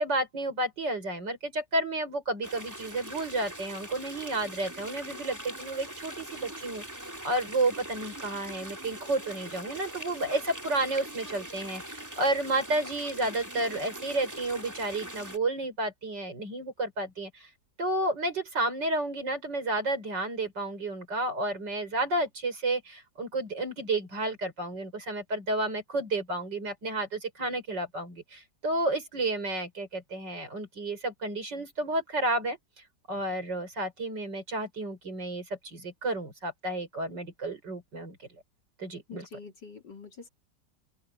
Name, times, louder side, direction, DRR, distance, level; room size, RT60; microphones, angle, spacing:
voice 1, 0.0-17.5 17.8-32.6 33.1-38.2 38.8-39.3, right 2 dB, 85° right, 6.3 m, -31 dB
sound 1, 2.4-15.4, right 1 dB, 10° right, 2.9 m, -42 dB
voice 2, 39.1-40.3, left 5 dB, 80° left, 4.5 m, -45 dB
open air
omnidirectional pair, 1.9 m